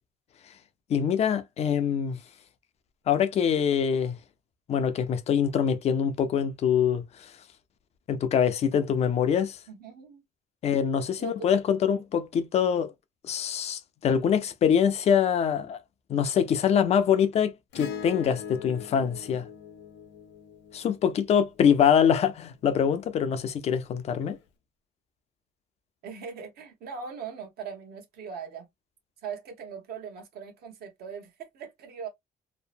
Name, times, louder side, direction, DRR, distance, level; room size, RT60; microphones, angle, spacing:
voice 1, 0.9-2.2 3.1-4.2 4.7-7.0 8.1-9.6 10.6-12.9 13.3-15.8 16.1-19.4 20.7-24.4, left 8 dB, 35° left, 0.4 m, -24 dB
voice 2, 9.7-10.2 11.2-11.5 26.0-28.7 29.2-32.1, right 6 dB, 60° right, 0.9 m, -40 dB
Acoustic guitar / Strum, 17.7-22.3 24.2-24.3, left 7 dB, 75° left, 0.7 m, -42 dB
2.8 x 2.0 x 2.4 m
cardioid pair, 160°, 18 cm